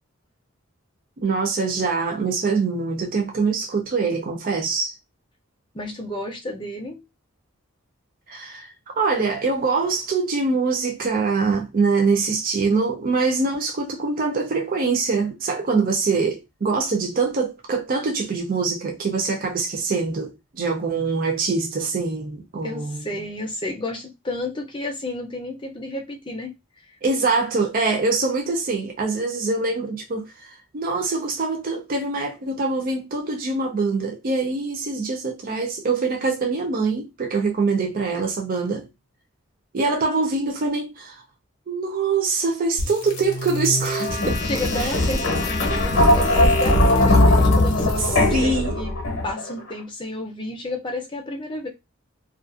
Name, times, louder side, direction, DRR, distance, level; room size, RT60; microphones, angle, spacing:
voice 1, 1.2-4.9 8.3-23.1 27.0-38.9 39.7-41.2 41.7-44.4 44.8-45.0 48.3-48.8, right 4 dB, 45° right, 0.4 m, -24 dB
voice 2, 5.7-7.0 22.6-26.5 27.2-27.3 44.4-48.9 49.2-51.7, left 2 dB, 25° left, 0.6 m, -31 dB
sound 1, 42.8-49.5, left 1 dB, 60° left, 0.8 m, -20 dB
2.4 x 2.4 x 2.4 m
head